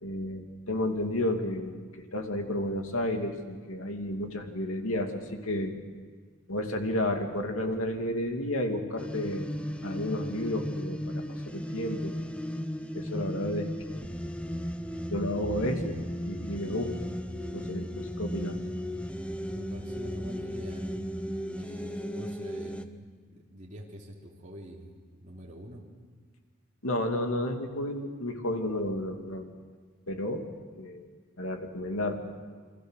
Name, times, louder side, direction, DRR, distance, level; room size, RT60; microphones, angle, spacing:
voice 1, 0.0-5.7 6.5-9.5 9.8-12.1 12.9-14.0 15.1-16.0 16.2-17.1 17.5-18.6 26.8-29.5 30.1-30.5 30.8-31.1 31.4-32.2, left 1 dB, 80° left, 4 dB, 2.6 m, -32 dB
sound 1, 9.0-22.9, equal, 5° left, 0.8 m, -36 dB
sound 2, 13.8-21.2, equal, 10° right, 2.2 m, -43 dB
voice 2, 19.5-21.2 21.5-25.8, equal, 35° right, -3 dB, 3.6 m, -46 dB
29.5 x 23.5 x 6.5 m, 1.5 s
head